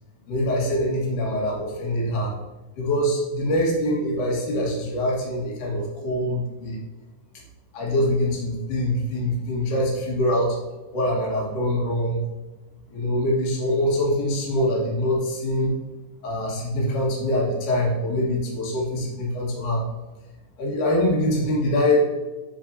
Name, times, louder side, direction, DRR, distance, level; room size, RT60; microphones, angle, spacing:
voice 1, 0.3-2.4 2.8-6.8 7.7-10.6 10.9-12.2 12.9-15.8 16.2-19.8 20.6-22.1, left 1 dB, 75° left, -3 dB, 3.0 m, -24 dB
9.6 x 4.7 x 2.7 m, 1.2 s
omnidirectional pair, 3.8 m